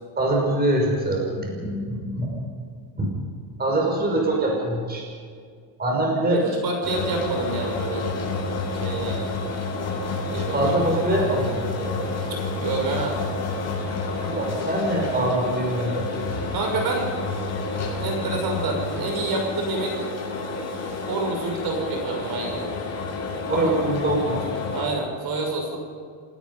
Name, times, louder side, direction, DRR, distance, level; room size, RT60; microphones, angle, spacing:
voice 1, 0.2-2.5 3.0-3.1 3.6-5.1 5.8-6.5 10.3-11.6 11.8-12.1 14.2-16.1 23.5-24.5, right 1 dB, 20° right, 0 dB, 5.6 m, -24 dB
voice 2, 6.3-8.1 8.7-9.3 10.1-11.0 12.3-13.2 16.5-17.1 18.0-20.0 21.0-22.6 23.4-23.7 24.7-25.8, right 3 dB, 45° right, 2 dB, 6.0 m, -28 dB
sound 1, 6.8-24.8, left 3 dB, 30° left, 7.4 m, -29 dB
28.5 x 18.5 x 5.5 m, 2.1 s
cardioid pair, 135°, 49 cm